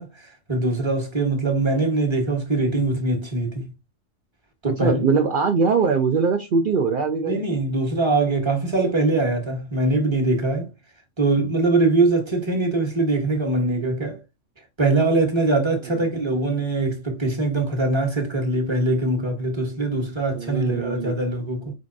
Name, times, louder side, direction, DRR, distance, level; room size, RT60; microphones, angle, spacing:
voice 1, 0.0-3.7 4.6-5.0 7.3-10.7 11.2-14.2 14.8-21.7, right 2 dB, 20° right, 1.3 m, -22 dB
voice 2, 4.6-7.3 15.9-16.0 20.3-21.2, right 5 dB, 50° right, 0.7 m, -22 dB
4.9 x 3.9 x 2.6 m
omnidirectional pair, 1.4 m